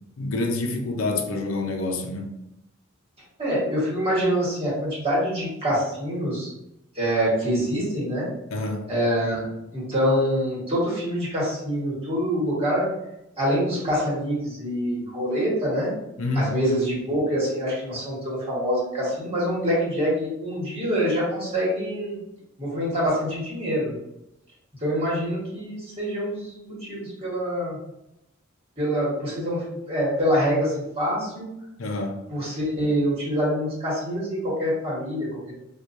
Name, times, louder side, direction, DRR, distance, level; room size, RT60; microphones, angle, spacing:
voice 1, 0.2-2.3 8.5-8.9 16.2-16.5 31.8-32.3, left 2 dB, 75° left, 4 dB, 0.5 m, -27 dB
voice 2, 3.4-6.5 6.9-8.3 8.9-9.4 9.7-12.9 13.4-15.9 16.3-22.2 22.6-23.9 24.8-27.8 28.8-31.5 32.3-35.5, equal, 30° right, -6 dB, 1.4 m, -25 dB
4.5 x 2.3 x 2.6 m, 0.87 s
head